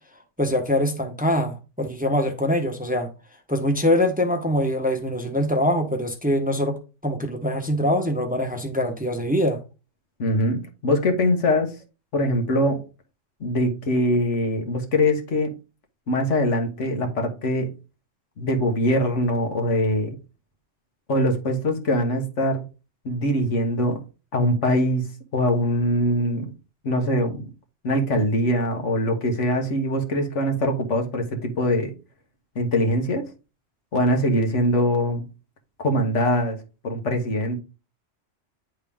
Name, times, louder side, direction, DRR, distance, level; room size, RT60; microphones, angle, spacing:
voice 1, 0.4-3.1 3.5-6.8 7.0-9.6, left 1 dB, 10° right, 0.9 m, -23 dB
voice 2, 10.2-11.8 12.1-12.8 13.4-15.5 16.1-17.7 18.4-20.1 21.1-22.6 23.0-24.0 24.3-26.5 26.8-27.5 27.8-31.9 32.5-33.3 33.9-35.2 35.8-36.6 36.8-37.6, left 1 dB, 75° left, 1.7 m, -22 dB
9.8 x 3.7 x 3.6 m
omnidirectional pair, 1.2 m